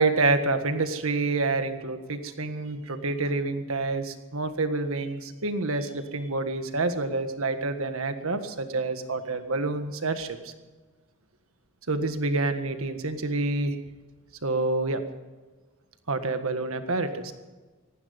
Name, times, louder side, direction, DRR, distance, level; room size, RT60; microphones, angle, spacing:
voice 1, 0.0-10.5 11.9-13.7 14.4-15.0 16.1-17.3, right 3 dB, 70° right, 8 dB, 1.6 m, -27 dB
19.0 x 14.5 x 5.3 m, 1.3 s
head